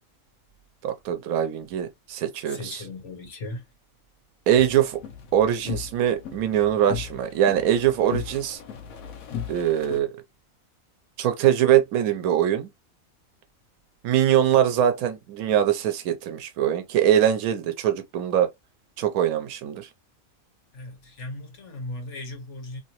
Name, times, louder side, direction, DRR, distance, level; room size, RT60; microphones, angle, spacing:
voice 1, 0.8-2.9 4.5-5.0 5.3-8.6 9.5-10.1 11.2-12.7 14.0-18.5 19.0-19.9, right 10 dB, 90° right, 1.0 m, -22 dB
voice 2, 2.5-3.6 20.7-22.8, left 2 dB, 60° left, 1.4 m, -37 dB
sound 1, 4.6-10.0, left 8 dB, 80° left, 1.0 m, -37 dB
3.0 x 2.7 x 2.8 m
omnidirectional pair, 1.5 m